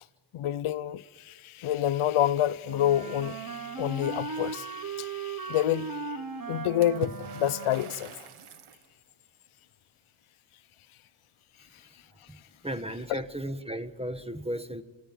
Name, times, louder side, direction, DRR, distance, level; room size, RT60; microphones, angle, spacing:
voice 1, 0.3-6.1 6.5-8.1 13.1-13.2, left 12 dB, 90° left, 0.7 m, -28 dB
Wind instrument woodwind instrument, 2.6-8.1, right 5 dB, 45° right, 1.6 m, -37 dB
Water / Splash splatter, 6.8-8.9, right 6 dB, 90° right, 1.8 m, -43 dB
voice 2, 12.6-14.8, equal, 10° right, 1.4 m, -35 dB
28.5 x 16.5 x 9.0 m
cardioid pair, 55°, 48 cm